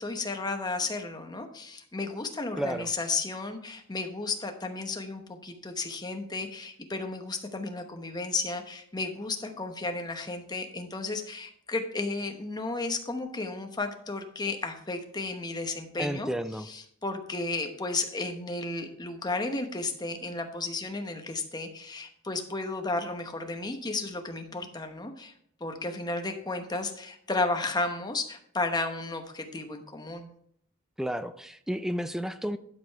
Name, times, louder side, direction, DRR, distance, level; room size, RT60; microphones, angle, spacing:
voice 1, 0.0-16.3 16.6-25.3 25.6-30.3, left 3 dB, 20° left, 5 dB, 1.0 m, -33 dB
voice 2, 2.6-2.9 16.0-16.7 31.0-32.6, equal, ahead, 11 dB, 0.4 m, -32 dB
12.0 x 5.1 x 4.6 m, 0.68 s
head